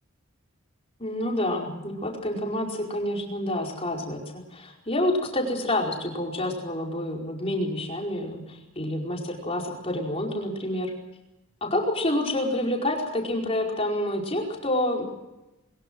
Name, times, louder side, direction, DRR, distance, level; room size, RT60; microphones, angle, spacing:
voice 1, 1.0-10.9 11.6-15.0, left 1 dB, 25° left, 0 dB, 4.9 m, -28 dB
23.0 x 21.5 x 6.3 m, 0.95 s
head